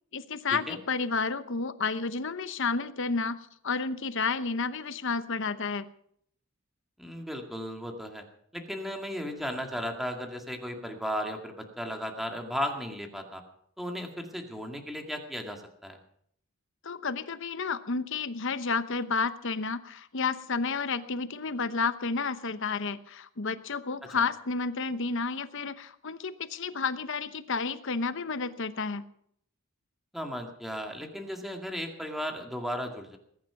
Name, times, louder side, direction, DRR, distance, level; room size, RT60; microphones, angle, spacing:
voice 1, 0.1-5.8 16.8-29.0, left 4 dB, 65° left, 12 dB, 0.9 m, -31 dB
voice 2, 7.0-8.2 8.5-13.4 13.8-16.0 30.1-33.2, equal, ahead, 3 dB, 2.1 m, -35 dB
20.0 x 10.5 x 5.8 m, 0.68 s
head